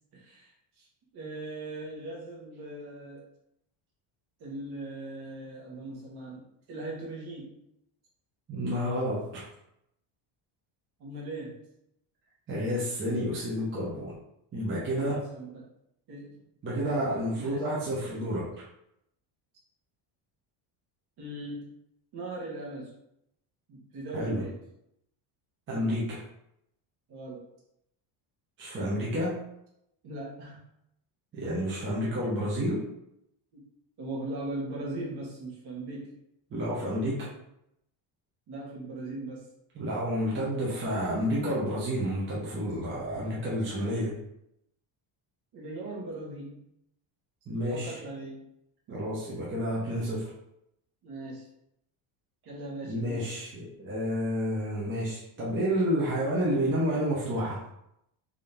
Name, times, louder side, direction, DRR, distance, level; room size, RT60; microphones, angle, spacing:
voice 1, 0.1-0.5 0.8-0.9 1.1-3.2 4.4-6.4 6.7-7.5 11.0-11.6 14.9-15.6 16.1-16.4 16.7-17.7 21.2-21.7 22.1-22.9 23.7-24.6 27.1-27.5 30.0-30.6 33.5-33.6 34.0-36.1 38.5-39.5 45.5-46.6 47.7-48.4 48.9-49.0 51.0-51.5 52.4-53.3, right 2 dB, 50° right, -3 dB, 1.4 m, -39 dB
voice 2, 8.5-9.5 12.5-14.1 14.5-15.2 16.6-18.5 24.1-24.4 25.7-26.2 28.6-29.5 31.3-32.9 36.5-37.3 39.8-44.1 47.5-48.0 48.9-50.3 52.8-57.6, equal, 25° right, -6 dB, 0.8 m, -30 dB
3.6 x 2.8 x 3.5 m, 0.80 s
cardioid pair, 155°, 50 cm